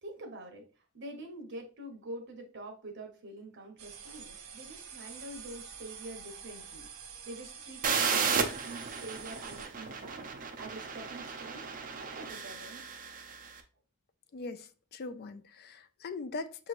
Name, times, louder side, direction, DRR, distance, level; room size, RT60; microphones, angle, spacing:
voice 1, 0.0-6.9 7.2-11.7 12.0-12.9, right 1 dB, 55° right, 1.1 m, -46 dB
sound 1, 3.8-9.7, right 7 dB, 80° right, 0.7 m, -47 dB
sound 2, 7.8-13.5, right 5 dB, 40° right, 0.6 m, -34 dB
voice 2, 14.3-16.7, left 3 dB, 45° left, 0.4 m, -40 dB
6.3 x 3.0 x 2.5 m
head